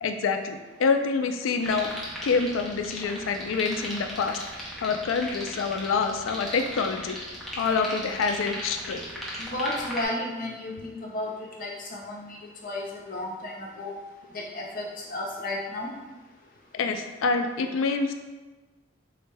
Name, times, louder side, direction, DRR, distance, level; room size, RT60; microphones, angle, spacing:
voice 1, 0.0-1.9 2.2-4.4 4.8-7.2 7.6-9.0 16.7-18.1, left 4 dB, 80° left, 6 dB, 0.3 m, -26 dB
sound 1, 1.6-10.0, equal, ahead, 0.5 m, -37 dB
voice 2, 9.4-11.3 11.6-12.4 12.6-13.9 14.3-15.9, left 1 dB, 45° left, -3 dB, 0.6 m, -33 dB
3.9 x 2.1 x 3.3 m, 1.2 s
head